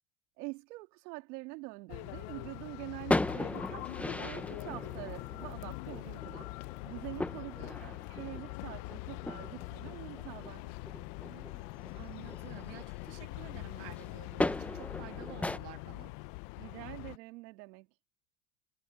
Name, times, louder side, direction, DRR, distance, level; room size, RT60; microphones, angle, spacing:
voice 1, 0.4-6.5 6.9-7.5 7.8-10.7 16.6-17.9, right 24 dB, 80° right, 1.9 m, -45 dB
sound 1, 1.9-17.2, left 24 dB, 60° left, 0.8 m, -43 dB
sound 2, 3.0-13.3 13.6-15.6, left 2 dB, 5° left, 0.4 m, -38 dB
voice 2, 7.2-7.9 11.2-11.6 11.9-16.1, right 23 dB, 60° right, 2.1 m, -51 dB
supercardioid pair, 135°, 47 cm